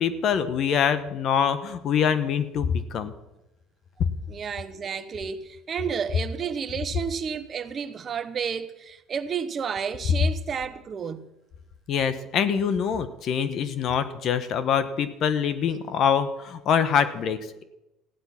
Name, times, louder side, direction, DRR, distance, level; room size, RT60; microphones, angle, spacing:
voice 1, 0.0-3.1 11.9-17.6, left 7 dB, 55° left, 1.1 m, -24 dB
voice 2, 4.3-11.3, right 7 dB, 40° right, 1.2 m, -31 dB
15.5 x 10.5 x 5.9 m
supercardioid pair, 100°, 0 cm